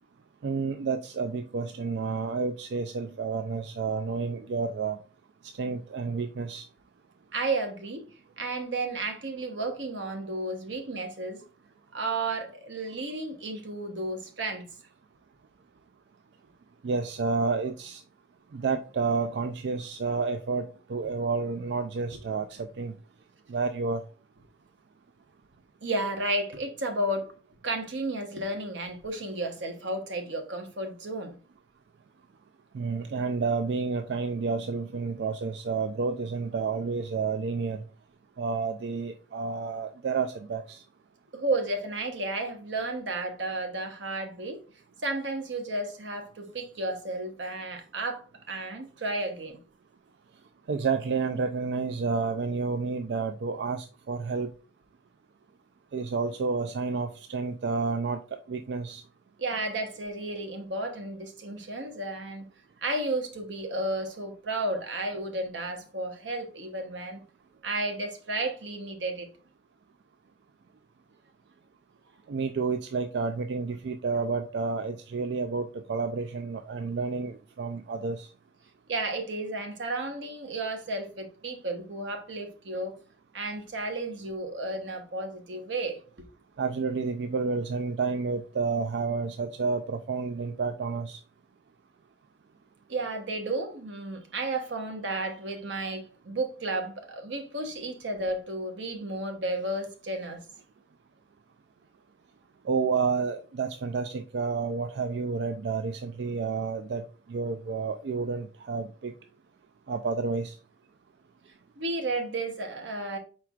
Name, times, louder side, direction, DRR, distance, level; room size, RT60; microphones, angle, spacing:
voice 1, 0.4-5.0 5.6-6.7 16.8-18.0 18.5-22.9 23.5-24.0 32.7-37.8 38.4-40.8 50.7-54.5 55.9-58.2 58.5-59.0 72.3-78.3 86.6-91.2 102.7-109.1 109.9-110.6, right 4 dB, 65° right, 0.3 m, -30 dB
voice 2, 7.3-8.1 8.4-11.4 11.9-14.7 22.1-22.2 25.8-27.3 27.6-31.3 41.3-44.6 45.0-49.6 59.4-62.4 62.8-67.2 67.6-69.3 78.9-83.0 83.3-86.0 92.9-100.4 111.8-113.2, right 2 dB, 85° right, 1.0 m, -32 dB
4.6 x 4.5 x 2.4 m
head